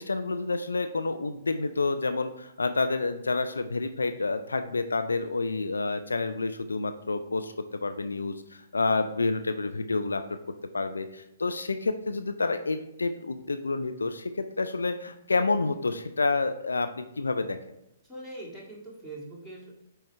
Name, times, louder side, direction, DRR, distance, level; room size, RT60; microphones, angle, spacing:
voice 1, 0.0-10.2 10.7-17.6, left 3 dB, 75° left, 9 dB, 0.4 m, -29 dB
voice 2, 18.0-19.7, right 2 dB, ahead, -6 dB, 2.0 m, -42 dB
7.8 x 4.6 x 3.1 m, 0.87 s
figure-of-eight pair, 120°, 0 cm